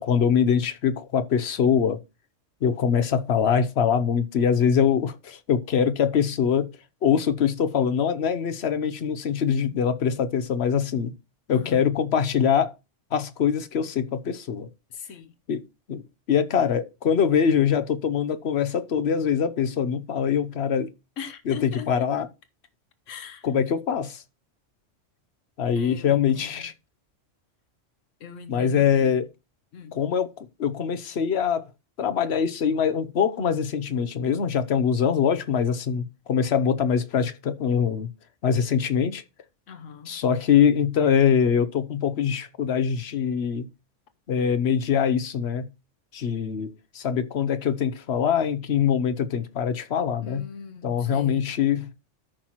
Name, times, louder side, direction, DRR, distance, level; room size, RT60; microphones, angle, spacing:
voice 1, 0.0-2.0 2.6-6.7 7.0-11.1 11.5-12.7 13.1-14.7 15.5-15.6 15.9-16.0 16.3-20.9 21.5-22.3 23.4-24.2 25.6-26.7 28.5-29.3 29.9-31.7 32.0-38.1 38.4-39.2 40.1-43.7 44.3-45.7 46.1-50.5 50.8-52.0, left 7 dB, 60° left, 1.0 m, -23 dB
voice 2, 11.5-11.8 14.9-15.3 21.2-22.1 23.1-23.5 25.7-26.7 28.2-29.3 29.7-30.0 39.7-40.1 50.2-51.4, left 7 dB, 85° left, 1.2 m, -41 dB
13.5 x 5.8 x 3.0 m
omnidirectional pair, 1.3 m